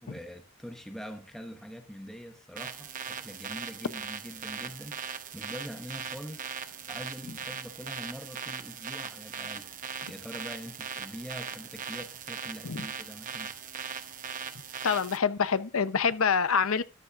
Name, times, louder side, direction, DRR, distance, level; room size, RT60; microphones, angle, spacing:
voice 1, 0.0-9.8 10.1-13.5, equal, ahead, 1.1 m, -44 dB
sound 1, 2.6-15.2, right 7 dB, 35° right, 0.9 m, -39 dB
voice 2, 14.8-16.8, left 6 dB, 70° left, 0.7 m, -26 dB
14.0 x 11.5 x 2.5 m
head